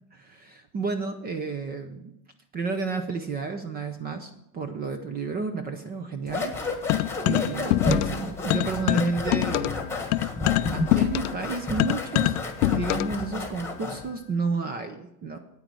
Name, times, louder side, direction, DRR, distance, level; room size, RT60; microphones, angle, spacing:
voice 1, 0.1-2.1 2.5-6.8 7.2-9.8 10.5-12.4 12.7-15.4, right 4 dB, 20° right, 8 dB, 0.5 m, -31 dB
sound 1, 6.3-14.1, left 2 dB, 5° left, 1.3 m, -31 dB
sound 2, 6.9-8.2 8.5-13.2, left 17 dB, 70° left, 0.5 m, -25 dB
9.2 x 9.2 x 6.1 m, 0.83 s
supercardioid pair, 150°, 49 cm